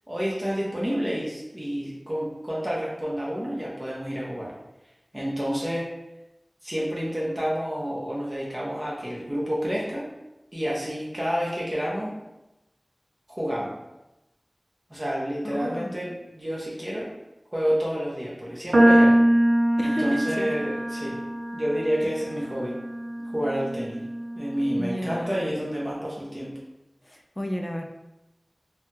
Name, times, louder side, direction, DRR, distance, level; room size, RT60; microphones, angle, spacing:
voice 1, 0.1-4.5 5.1-5.9 6.6-10.1 10.5-12.1 13.3-13.7 14.9-17.1 17.5-19.2 19.8-21.2 21.5-22.8 23.3-24.0 24.3-26.5, equal, 25° right, -6 dB, 1.0 m, -29 dB
voice 2, 15.4-15.9 19.8-20.5 24.8-25.5 27.0-27.8, equal, 30° left, 2 dB, 0.4 m, -32 dB
sound 1, 18.7-25.1, right 1 dB, 70° right, 0.5 m, -23 dB
3.4 x 2.2 x 2.8 m, 0.94 s
wide cardioid pair, 50°, 0 cm